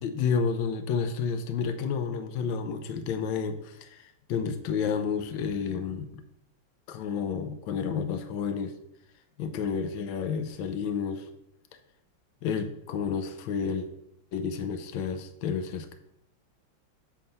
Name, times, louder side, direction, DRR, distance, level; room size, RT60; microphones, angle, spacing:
voice 1, 0.0-6.2 6.9-8.7 9.4-11.3 12.4-13.9 14.3-15.9, left 6 dB, 80° left, 8 dB, 1.4 m, -30 dB
8.7 x 3.5 x 5.5 m, 0.77 s
omnidirectional pair, 2.2 m